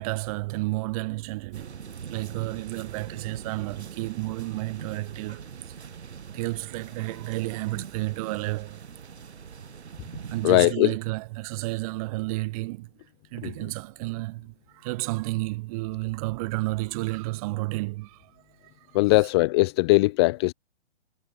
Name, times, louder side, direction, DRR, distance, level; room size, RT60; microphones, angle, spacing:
voice 1, 0.0-1.7 2.1-5.9 6.3-8.8 10.3-12.9 13.3-18.7, right 22 dB, 30° right, 1.8 m, -31 dB
sound 1, 1.5-10.7, right 7 dB, 70° right, 2.4 m, -42 dB
voice 2, 10.4-10.9 13.4-13.5 18.9-20.5, left 22 dB, 25° left, 0.7 m, -20 dB
figure-of-eight pair, 130°, 34 cm